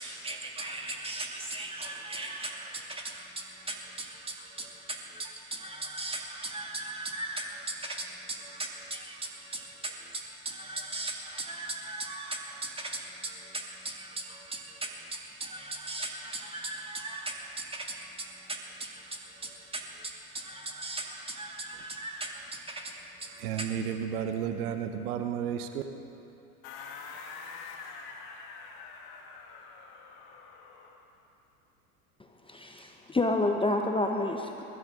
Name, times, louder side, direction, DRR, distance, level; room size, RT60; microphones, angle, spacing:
voice 1, 0.0-23.7, right 2 dB, 10° right, 0 dB, 2.2 m, -38 dB
voice 2, 23.4-25.8, right 8 dB, 75° right, 7 dB, 1.1 m, -32 dB
sound 1, 26.6-31.0, left 5 dB, 55° left, 1.7 m, -45 dB
voice 3, 32.5-34.6, left 2 dB, 10° left, 3 dB, 0.9 m, -28 dB
20.5 x 13.0 x 3.8 m, 2.8 s
hypercardioid pair, 90°, 45 cm